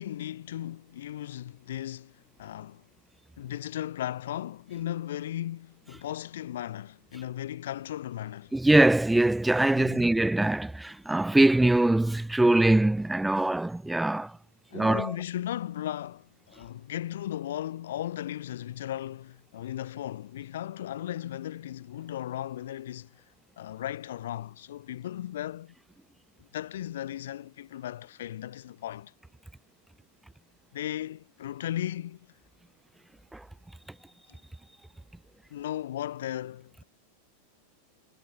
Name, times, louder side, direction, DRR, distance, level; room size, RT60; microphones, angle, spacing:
voice 1, 0.0-2.8 3.4-8.5 9.7-10.1 14.7-23.2 23.6-25.7 26.4-29.1 30.7-32.3 34.3-34.4 35.5-36.8, left 12 dB, 60° left, 5.5 m, -36 dB
voice 2, 8.5-14.4 14.7-15.1 33.3-33.5, right 2 dB, 5° right, 2.6 m, -23 dB
figure-of-eight pair, 90°, 0 cm